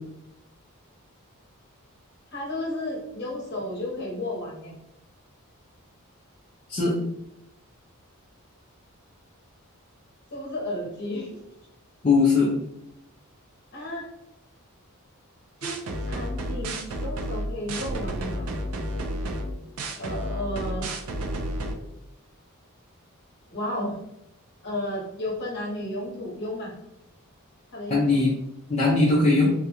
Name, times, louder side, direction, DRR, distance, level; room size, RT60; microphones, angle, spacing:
voice 1, 2.3-4.8 10.3-11.3 13.7-14.1 15.6-15.8 16.1-18.5 20.0-20.9 23.5-24.0 24.6-26.7 27.7-28.2, left 1 dB, 50° left, -3 dB, 0.9 m, -33 dB
voice 2, 12.0-12.5 27.9-28.3 28.7-29.5, left 3 dB, 30° left, -5 dB, 0.4 m, -20 dB
sound 1, 15.6-21.7, right 1 dB, 75° right, 0.4 m, -31 dB
2.4 x 2.2 x 2.8 m, 0.84 s
head